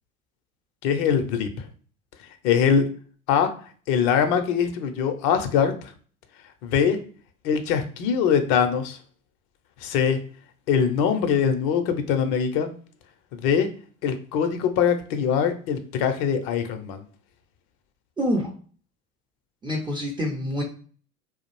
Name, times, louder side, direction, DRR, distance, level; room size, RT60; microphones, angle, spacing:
voice 1, 0.8-1.5 2.4-2.9 3.3-3.5 3.9-5.9 6.6-7.0 7.4-9.0 9.8-10.2 10.7-12.7 13.3-13.7 14.0-17.0, left 7 dB, 50° left, 8 dB, 0.6 m, -22 dB
voice 2, 18.2-18.5 19.6-20.6, equal, 10° right, -1 dB, 0.4 m, -26 dB
2.3 x 2.0 x 3.0 m, 0.43 s
hypercardioid pair, 75°, 44 cm